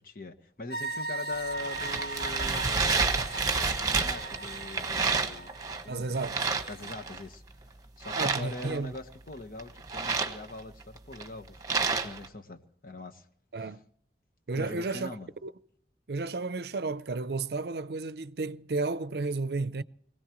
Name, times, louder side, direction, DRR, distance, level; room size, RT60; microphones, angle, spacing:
voice 1, 0.0-2.7 3.8-5.6 5.8-6.2 6.7-13.3 13.6-13.7 14.5-15.3, left 2 dB, 50° left, 1.2 m, -42 dB
sound 1, 0.7-6.9, right 2 dB, 70° left, 2.1 m, -39 dB
sound 2, 1.3-5.8 6.1-7.2 8.0-9.0 9.6-12.3, right 4 dB, 20° right, 1.2 m, -30 dB
voice 2, 5.9-6.5 8.1-8.9 13.5-13.8 14.5-15.2 15.4-15.5 16.1-19.8, right 3 dB, 65° right, 0.6 m, -32 dB
23.5 x 17.0 x 3.1 m
head